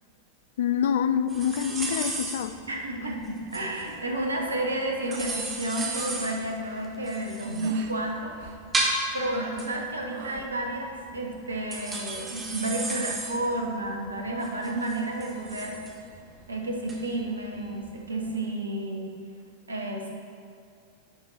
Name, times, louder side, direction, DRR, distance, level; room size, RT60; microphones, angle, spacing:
voice 1, 0.6-2.6, left 8 dB, 60° left, 0.3 m, -26 dB
sound 1, 1.3-18.4, right 2 dB, 15° right, 1.2 m, -35 dB
voice 2, 2.7-8.3 9.1-15.8 16.5-19.1 19.7-20.1, right 1 dB, 75° right, 1.0 m, -31 dB
sound 2, 4.3-4.7 5.0-5.4 5.7-6.3 6.5-6.9 7.6-7.9 8.4-8.7 9.2-9.7 10.1-10.5, right 6 dB, 55° right, 0.6 m, -44 dB
10.0 x 4.3 x 4.3 m
figure-of-eight pair, 90°, 0 cm